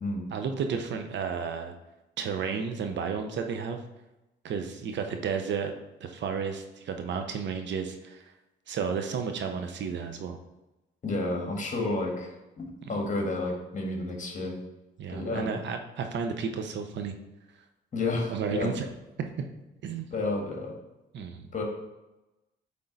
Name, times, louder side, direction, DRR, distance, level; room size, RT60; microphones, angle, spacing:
voice 1, 0.3-1.7 2.2-3.8 4.4-5.7 6.0-8.2 8.7-10.4 12.9-13.0 15.0-17.1 18.3-18.9 19.8-20.1 21.1-21.5, right 6 dB, 65° right, 6 dB, 0.8 m, -32 dB
voice 2, 11.0-14.6 15.1-15.5 17.9-18.7 20.1-20.7 21.5-21.6, left 2 dB, 40° left, 1 dB, 1.7 m, -31 dB
7.7 x 3.7 x 4.0 m, 1.0 s
cardioid pair, 90°, 20 cm